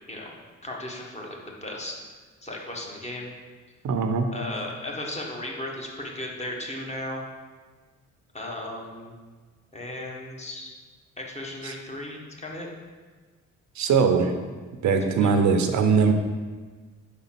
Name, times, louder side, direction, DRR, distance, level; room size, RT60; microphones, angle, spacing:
voice 1, 0.6-2.0 2.4-3.3 4.3-7.2 8.3-9.1 9.7-10.7 11.2-12.7 15.2-15.5, left 1 dB, 20° left, -1 dB, 1.3 m, -36 dB
voice 2, 3.8-4.3 11.6-11.7 13.8-14.3 14.8-16.1, right 5 dB, 70° right, 6 dB, 0.7 m, -21 dB
5.0 x 4.0 x 5.8 m, 1.4 s
cardioid pair, 90°, 30 cm